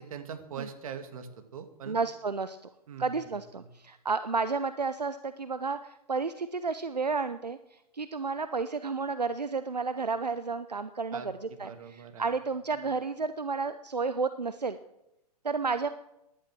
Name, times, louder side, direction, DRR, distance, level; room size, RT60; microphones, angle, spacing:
voice 1, 0.1-2.0 2.9-3.7 11.1-12.3, right 7 dB, 60° right, 8 dB, 2.4 m, -43 dB
voice 2, 1.9-2.6 3.0-7.6 7.9-11.3 11.6-14.8 15.4-15.9, right 4 dB, 90° right, 12 dB, 0.8 m, -31 dB
16.5 x 11.5 x 6.2 m, 0.88 s
figure-of-eight pair, 115°, 20 cm